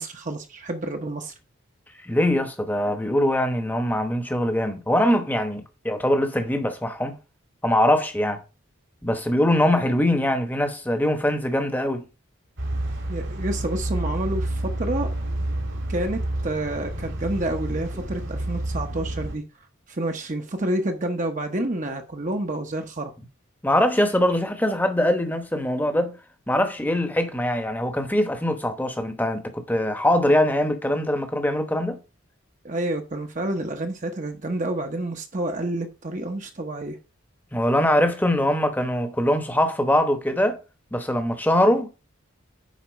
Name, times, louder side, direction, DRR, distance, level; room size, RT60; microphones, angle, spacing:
voice 1, 0.0-1.3 13.1-15.1 15.9-19.4 19.9-23.1 32.6-37.0, right 1 dB, 35° right, 0.8 m, -29 dB
voice 2, 2.0-7.2 7.6-8.4 9.0-12.0 23.6-26.2 26.5-32.0 37.5-40.6 40.9-41.9, left 1 dB, 10° left, 0.9 m, -22 dB
sound 1, 12.6-19.4, right 1 dB, 65° right, 2.0 m, -29 dB
9.3 x 4.1 x 5.2 m
head